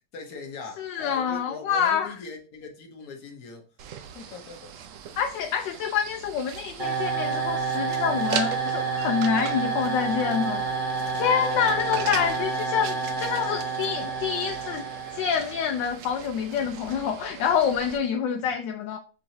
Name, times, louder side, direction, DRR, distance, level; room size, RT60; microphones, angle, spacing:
voice 1, 0.1-3.7 4.1-4.7 18.4-18.5, left 4 dB, 60° left, 1.3 m, -41 dB
voice 2, 0.8-2.1 5.2-10.6 11.1-14.8 15.1-19.0, left 7 dB, 85° left, 1.2 m, -27 dB
sound 1, 3.8-18.0, right 8 dB, 75° right, 0.7 m, -40 dB
sound 2, 6.8-15.7, right 4 dB, 30° right, 1.1 m, -29 dB
6.6 x 2.9 x 2.7 m
omnidirectional pair, 1.9 m